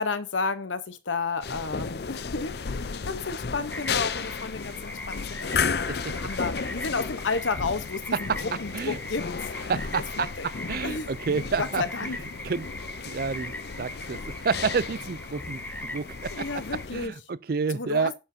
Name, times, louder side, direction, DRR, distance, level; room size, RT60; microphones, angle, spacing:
voice 1, 0.0-9.5 10.1-10.5 10.8-11.1 11.6-12.2 16.3-17.1 17.7-18.2, left 4 dB, 85° left, 1.0 m, -32 dB
sound 1, 1.4-17.1, left 5 dB, 55° left, 0.5 m, -34 dB
sound 2, 3.7-16.9, left 2 dB, 10° left, 0.5 m, -40 dB
voice 2, 9.7-10.3 10.7-11.8 12.4-12.7 13.0-13.5 13.8-16.5 16.9-18.1, right 5 dB, 50° right, 0.4 m, -29 dB
11.0 x 7.4 x 2.8 m
head